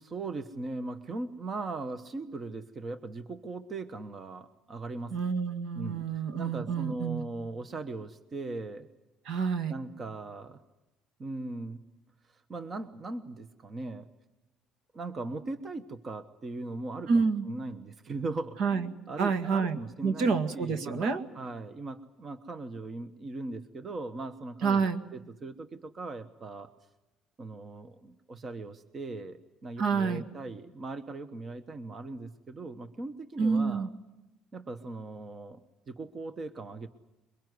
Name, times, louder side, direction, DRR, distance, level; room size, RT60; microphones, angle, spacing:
voice 1, 0.0-5.2 5.7-8.9 9.7-10.6 11.2-11.8 12.3-14.1 14.9-26.7 27.4-33.9 34.5-36.9, right 3 dB, 35° right, 10 dB, 1.1 m, -39 dB
voice 2, 5.1-7.3 9.3-9.7 17.1-17.5 18.6-18.9 19.2-21.2 24.6-25.0 29.8-30.2 33.4-33.9, right 5 dB, 70° right, 8 dB, 1.9 m, -28 dB
23.0 x 22.0 x 9.5 m, 0.97 s
cardioid pair, 125°, 0 cm